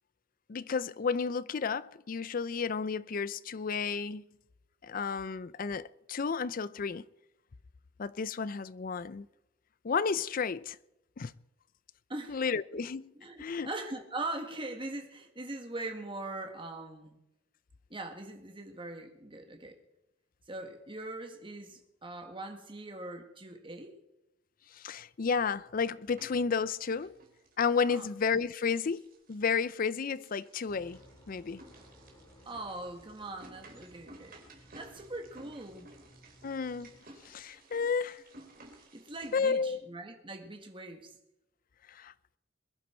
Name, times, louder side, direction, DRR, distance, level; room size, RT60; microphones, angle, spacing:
voice 1, 0.5-4.2 4.8-7.1 8.0-9.3 9.8-10.8 11.2-11.3 12.3-13.1 13.4-13.7 24.7-27.2 27.6-31.6 36.4-36.9 37.2-38.2 39.3-39.9 41.9-42.1, left 5 dB, 45° left, 0.5 m, -32 dB
voice 2, 13.1-17.2 17.9-19.8 20.5-24.0 27.9-28.1 32.4-36.0 38.9-41.2, right 2 dB, 25° right, 1.7 m, -41 dB
sound 1, 25.6-26.4 26.7-39.5, right 1 dB, 45° right, 3.3 m, -56 dB
sound 2, 30.7-37.0, equal, 15° left, 5.0 m, -59 dB
22.0 x 11.0 x 4.5 m
head